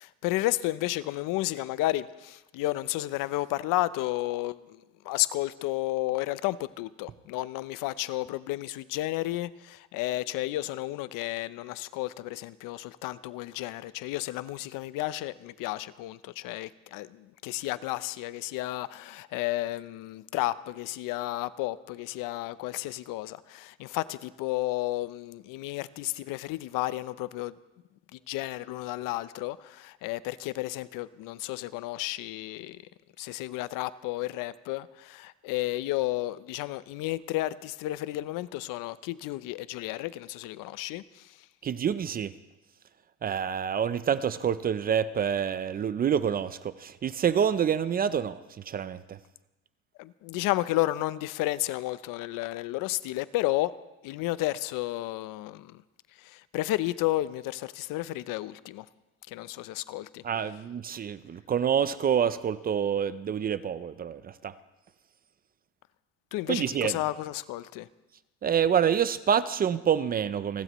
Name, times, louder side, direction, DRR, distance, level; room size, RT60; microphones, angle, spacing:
voice 1, 0.0-4.8 5.0-27.5 28.1-32.8 33.2-41.3 50.0-53.7 54.0-55.8 56.2-58.9 59.3-60.2 66.3-67.9, left 17 dB, 70° left, 17 dB, 0.6 m, -32 dB
voice 2, 41.6-42.3 43.2-49.2 60.2-64.5 66.5-67.0 68.4-70.6, right 8 dB, 30° right, 15 dB, 0.4 m, -27 dB
29.5 x 12.5 x 3.0 m, 1.0 s
cardioid pair, 130°, 34 cm